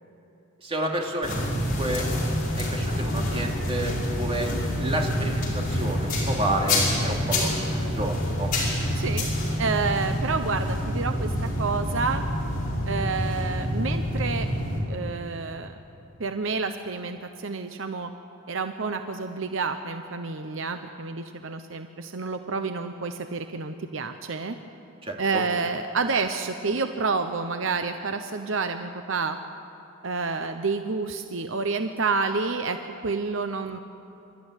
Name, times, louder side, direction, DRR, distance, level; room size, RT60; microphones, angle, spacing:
voice 1, 0.6-2.1 2.6-8.5 25.0-25.4, right 1 dB, 30° right, 0 dB, 2.7 m, -30 dB
sound 1, 1.2-14.8, left 1 dB, 45° left, 5.3 m, -27 dB
voice 2, 9.0-9.3 9.6-12.2 12.9-14.5 14.9-15.7 16.2-18.1 18.5-24.6 25.2-29.4 30.0-32.8 33.0-33.8, right 4 dB, 65° right, 7 dB, 0.9 m, -29 dB
27.5 x 13.0 x 9.9 m, 2.9 s
head